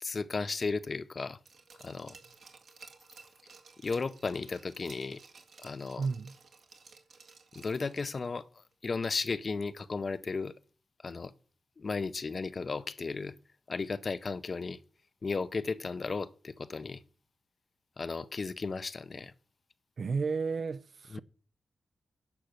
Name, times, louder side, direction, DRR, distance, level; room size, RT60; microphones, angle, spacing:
voice 1, 0.0-1.4 1.8-2.2 3.8-5.2 5.6-6.1 7.5-8.5 8.8-10.5 11.0-11.3 11.8-13.3 13.7-14.8 15.2-17.0 18.0-19.3 21.1-21.2, left 4 dB, 45° left, 0.6 m, -34 dB
Glass, 1.5-8.4 8.7-8.8, right 5 dB, 70° right, 1.9 m, -55 dB
voice 2, 6.0-6.3 20.0-21.2, right 4 dB, 55° right, 0.4 m, -32 dB
10.5 x 5.9 x 6.5 m
wide cardioid pair, 95°, 0 cm